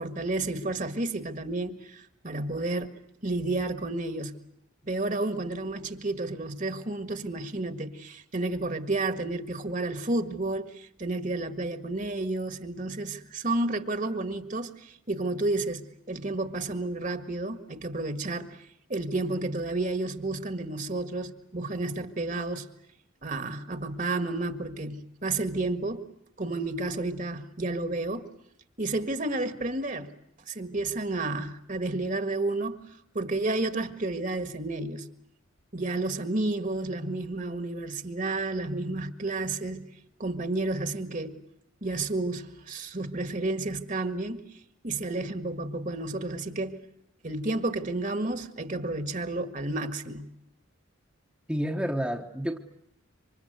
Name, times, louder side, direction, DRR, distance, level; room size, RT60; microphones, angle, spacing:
voice 1, 0.0-4.3 4.8-18.6 18.9-22.7 23.2-26.0 26.4-28.3 28.8-30.1 30.5-32.8 33.2-35.1 35.7-39.9 40.2-41.4 41.8-44.4 44.8-46.8 47.2-50.3, right 2 dB, 40° right, 1.8 m, -31 dB
voice 2, 51.5-52.6, equal, 5° right, 1.2 m, -29 dB
27.5 x 25.5 x 8.1 m
head